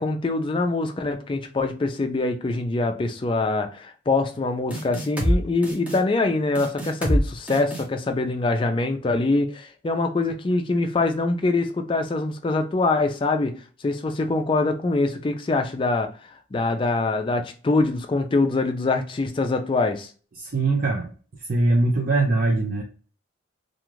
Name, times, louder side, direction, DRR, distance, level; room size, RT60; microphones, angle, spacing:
voice 1, 0.0-13.6 13.8-16.1 16.5-20.1, left 3 dB, 25° left, 0.3 m, -24 dB
sound 1, 4.7-5.4 5.6-6.0 6.5-7.2 7.5-7.8, equal, 5° right, 0.7 m, -24 dB
voice 2, 20.4-21.1 21.5-22.8, right 2 dB, 45° right, 0.4 m, -21 dB
2.4 x 2.3 x 3.0 m
head